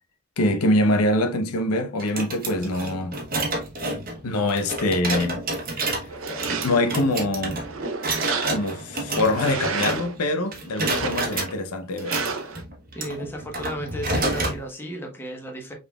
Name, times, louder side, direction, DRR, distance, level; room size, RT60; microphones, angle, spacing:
voice 1, 0.4-3.2 4.2-5.4 6.6-7.6 8.5-12.2, left 1 dB, 85° left, 0.7 m, -24 dB
sound 1, 2.0-10.3 10.5-11.5 12.0-14.6, right 2 dB, 40° right, 1.1 m, -29 dB
sound 2, 6.1-7.0 7.5-8.8 9.2-10.1 10.7-11.5 12.0-12.6, right 4 dB, 65° right, 0.7 m, -31 dB
voice 2, 12.9-15.7, equal, 10° left, 1.1 m, -34 dB
5.5 x 3.8 x 2.3 m
head